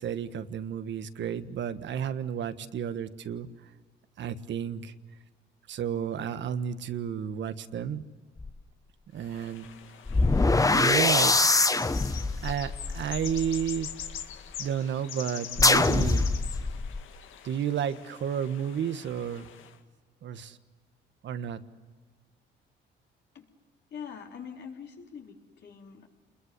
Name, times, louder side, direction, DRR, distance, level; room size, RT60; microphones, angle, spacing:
voice 1, 0.0-3.5 4.2-4.9 5.7-8.0 9.1-9.7 10.7-11.4 12.4-14.0 14.6-16.3 17.4-19.5 20.2-20.6 21.2-21.6, right 8 dB, 65° right, 11 dB, 1.5 m, -32 dB
sound 1, 8.4-8.5 10.1-14.2 15.6-17.0, left 3 dB, 15° left, 1.0 m, -24 dB
sound 2, 9.2-19.8, left 9 dB, 85° left, 2.0 m, -43 dB
voice 2, 23.9-26.1, left 7 dB, 60° left, 2 dB, 4.1 m, -43 dB
28.5 x 21.5 x 9.7 m, 1.4 s
cardioid pair, 90°, 20 cm